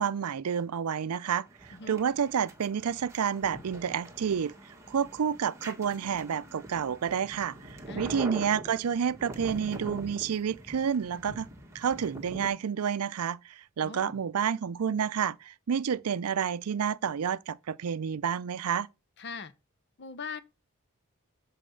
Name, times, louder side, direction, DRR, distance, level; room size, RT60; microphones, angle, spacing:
voice 1, 0.0-4.5 4.9-7.5 8.0-11.5 11.7-18.9, right 7 dB, 90° right, 0.5 m, -29 dB
sound 1, 1.5-12.5, right 1 dB, 15° right, 1.7 m, -44 dB
voice 2, 7.9-8.3 13.8-14.2 19.2-19.5 20.0-20.4, left 4 dB, 50° left, 0.7 m, -41 dB
7.7 x 4.1 x 6.3 m
head